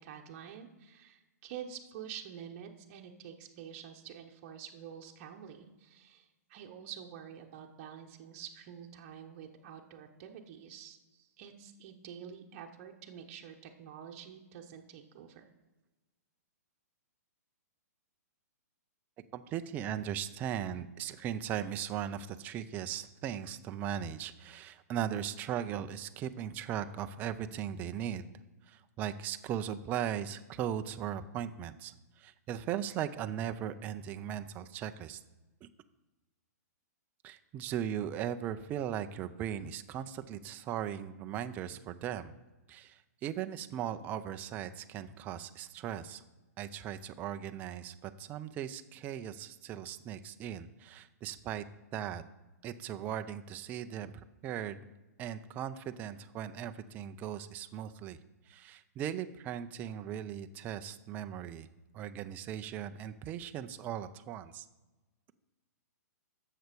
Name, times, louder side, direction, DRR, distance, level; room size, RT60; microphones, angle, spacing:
voice 1, 0.0-15.5, right 8 dB, 35° right, 2 dB, 1.0 m, -48 dB
voice 2, 19.3-28.3 28.7-35.2 35.6-35.7 37.2-42.3 42.7-46.2 46.6-51.6 51.9-52.2 52.6-54.1 54.4-54.8 55.2-58.2 58.5-61.7 61.9-64.7, right 10 dB, 20° right, 10 dB, 0.4 m, -38 dB
7.8 x 6.6 x 6.7 m, 1.1 s
hypercardioid pair, 155°, 9 cm